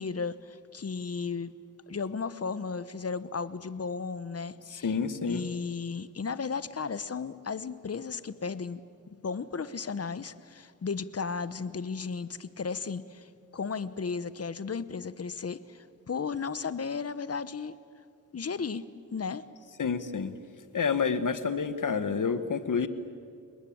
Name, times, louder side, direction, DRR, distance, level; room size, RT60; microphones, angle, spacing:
voice 1, 0.0-1.5 1.9-5.0 5.3-17.7 18.3-18.9 19.1-19.5, left 5 dB, 45° left, 16 dB, 1.0 m, -35 dB
voice 2, 4.7-5.5 19.8-20.3 20.7-22.9, left 5 dB, 65° left, 12 dB, 1.5 m, -29 dB
29.5 x 19.5 x 8.8 m, 2.3 s
wide cardioid pair, 95°, 34 cm